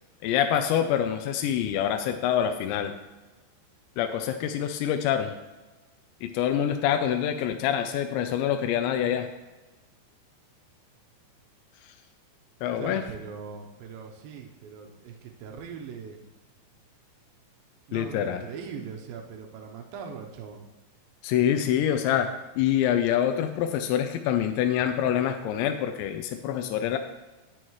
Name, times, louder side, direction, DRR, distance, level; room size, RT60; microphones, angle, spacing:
voice 1, 0.2-2.9 4.0-5.3 6.2-9.3 12.6-13.1 17.9-18.5 21.2-22.3 22.6-27.0, left 10 dB, 85° left, 6 dB, 2.8 m, -26 dB
voice 2, 12.8-15.1 15.4-16.1 17.9-20.6, right 6 dB, 90° right, 2 dB, 2.1 m, -40 dB
18.5 x 6.4 x 3.1 m, 1.2 s
omnidirectional pair, 5.2 m